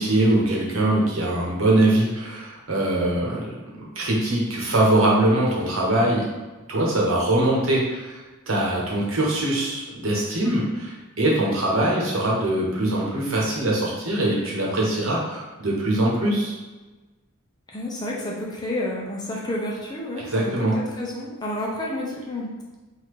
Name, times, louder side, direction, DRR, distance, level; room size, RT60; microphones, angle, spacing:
voice 1, 0.0-6.3 6.7-8.2 8.5-16.6 20.2-20.8, right 1 dB, 65° right, -3 dB, 1.2 m, -22 dB
voice 2, 17.7-22.5, left 1 dB, 20° left, -4 dB, 0.8 m, -30 dB
4.0 x 2.7 x 4.8 m, 1.2 s
head